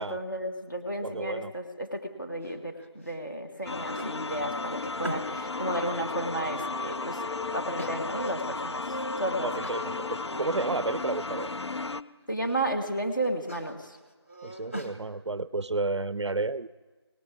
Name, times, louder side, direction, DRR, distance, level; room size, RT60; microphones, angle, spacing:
voice 1, 0.0-7.2 7.5-8.8 9.2-9.5 12.3-13.9, right 1 dB, 45° left, 3 dB, 1.3 m, -33 dB
voice 2, 1.0-1.5 9.4-11.5 14.4-16.7, right 3 dB, 75° right, 18 dB, 0.4 m, -31 dB
sound 1, 2.4-3.2 3.5-5.5 6.0-7.2 7.8-8.6 9.0-9.1 9.6-9.9 10.3-11.0 11.3-11.8 12.2-12.7 13.1-15.0, right 1 dB, 30° left, 0.9 m, -43 dB
sound 2, 3.7-12.0, left 3 dB, 70° left, 0.4 m, -34 dB
Wind instrument woodwind instrument, 5.8-8.4 8.9-12.7, left 3 dB, 85° left, 2.2 m, -42 dB
18.0 x 7.4 x 8.4 m, 1.3 s
figure-of-eight pair, 175°, 15 cm